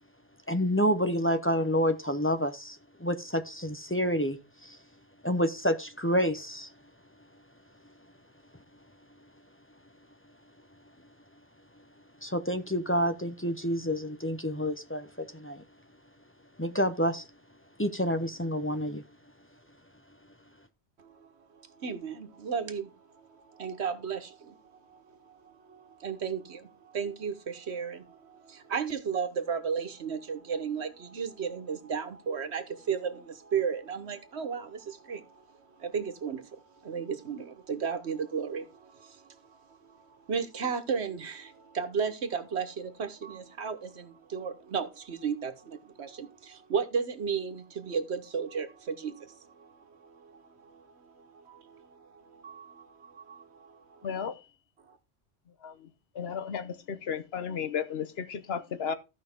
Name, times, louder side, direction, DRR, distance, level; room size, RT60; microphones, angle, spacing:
voice 1, 0.5-4.4 5.2-6.7 12.2-15.1 15.3-15.6 16.6-17.2 17.8-19.0, equal, 15° left, 0.7 m, -28 dB
voice 2, 21.0-24.6 24.9-35.4 35.8-54.1 54.9-55.0, right 6 dB, 85° right, 1.4 m, -35 dB
voice 3, 54.0-54.4 55.6-55.7 56.1-58.9, left 7 dB, 70° left, 1.1 m, -34 dB
14.5 x 5.3 x 3.5 m
omnidirectional pair, 1.1 m